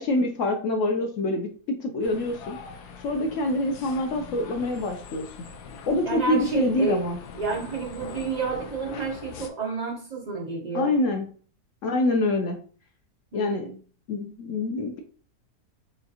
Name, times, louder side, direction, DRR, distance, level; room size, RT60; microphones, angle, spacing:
voice 1, 0.0-2.6 3.0-5.3 5.9-7.2 10.7-11.3 11.8-12.6 13.3-13.7 14.1-15.0, left 2 dB, 65° left, 4 dB, 0.8 m, -26 dB
sound 1, 2.0-9.5, left 5 dB, 85° left, 1.2 m, -42 dB
voice 2, 6.1-7.0 7.3-11.0 13.3-13.8, right 4 dB, 60° right, 0 dB, 0.4 m, -30 dB
5.1 x 2.4 x 2.8 m, 0.42 s
omnidirectional pair, 1.7 m